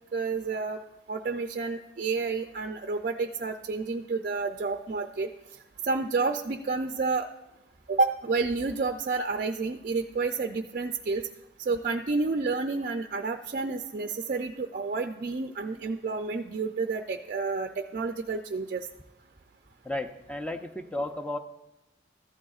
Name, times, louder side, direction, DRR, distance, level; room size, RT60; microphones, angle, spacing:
voice 1, 0.1-0.8 1.1-5.3 5.8-7.3 7.9-11.2 11.6-18.9, right 4 dB, 50° right, 6 dB, 0.4 m, -30 dB
voice 2, 19.8-21.4, left 1 dB, 5° left, 6 dB, 0.5 m, -33 dB
14.5 x 11.5 x 2.4 m, 0.97 s
head